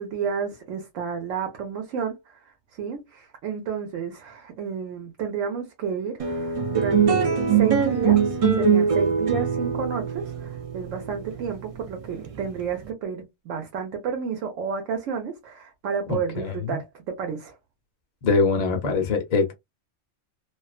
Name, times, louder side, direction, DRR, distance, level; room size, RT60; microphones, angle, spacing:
voice 1, 0.0-2.5 2.8-17.6, right 6 dB, 80° right, 1.0 m, -31 dB
sound 1, 6.2-12.8, right 6 dB, 50° right, 0.4 m, -23 dB
voice 2, 16.1-16.8 18.2-19.5, left 4 dB, 40° left, 0.7 m, -23 dB
2.4 x 2.3 x 2.3 m
omnidirectional pair, 1.3 m